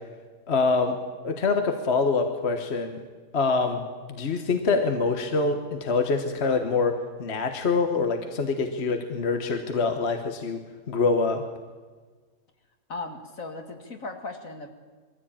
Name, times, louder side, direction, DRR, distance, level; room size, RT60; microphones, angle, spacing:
voice 1, 0.5-1.0 1.2-3.0 3.3-3.8 4.1-10.6 10.9-11.4, left 4 dB, 45° left, 6 dB, 1.5 m, -25 dB
voice 2, 12.9-14.7, left 3 dB, 65° left, 5 dB, 2.4 m, -37 dB
22.0 x 15.0 x 8.8 m, 1.4 s
omnidirectional pair, 1.6 m